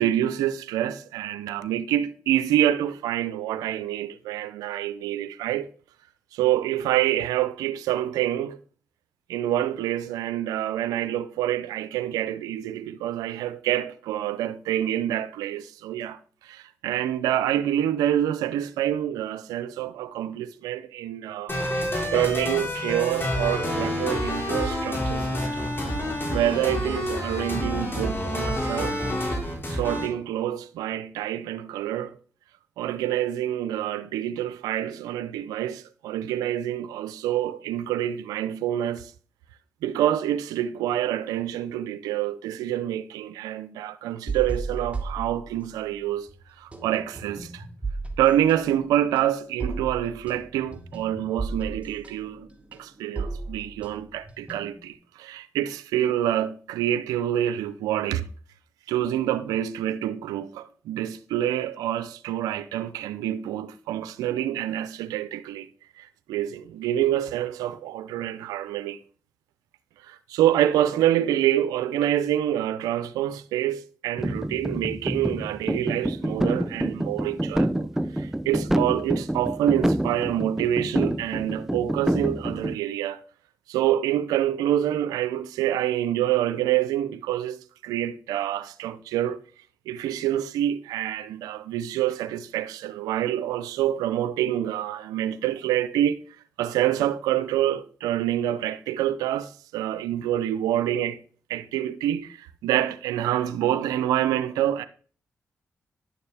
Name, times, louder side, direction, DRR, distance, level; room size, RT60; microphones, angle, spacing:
voice 1, 0.0-5.7 6.3-8.6 9.3-21.6 22.1-25.7 26.3-29.0 29.7-32.2 32.8-39.1 39.8-46.3 46.6-47.6 48.2-52.5 52.8-58.3 58.9-65.7 66.0-69.0 70.1-77.9 78.1-83.2 83.7-89.4 89.9-96.2 96.6-101.2 101.5-104.9, right 12 dB, 90° right, 0.5 m, -27 dB
sound 1, 21.5-30.1, left 1 dB, 35° left, 4.1 m, -28 dB
sound 2, 44.3-46.0 46.3-54.9, right 3 dB, 20° right, 2.0 m, -35 dB
sound 3, 74.2-82.7, right 1 dB, 5° right, 0.4 m, -27 dB
10.0 x 6.6 x 3.4 m
supercardioid pair, 45°, 6 cm